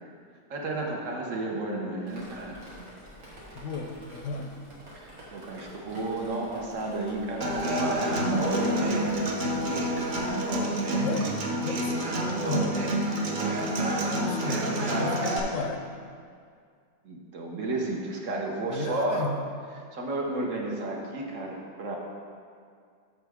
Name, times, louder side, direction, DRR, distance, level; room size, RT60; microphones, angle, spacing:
voice 1, 0.5-2.6 4.9-10.1 13.8-14.4 17.0-19.3 19.9-22.0, right 2 dB, 65° right, -1 dB, 1.3 m, -32 dB
Drip, 2.1-10.6, right 1 dB, 90° right, 2.1 m, -48 dB
voice 2, 3.5-4.5 11.0-12.8 14.1-15.9 18.7-19.3, left 4 dB, 70° left, 4 dB, 0.9 m, -34 dB
Human voice / Acoustic guitar, 7.4-15.4, right 1 dB, 40° right, 0.8 m, -28 dB
8.7 x 6.3 x 3.5 m, 2.2 s
omnidirectional pair, 1.5 m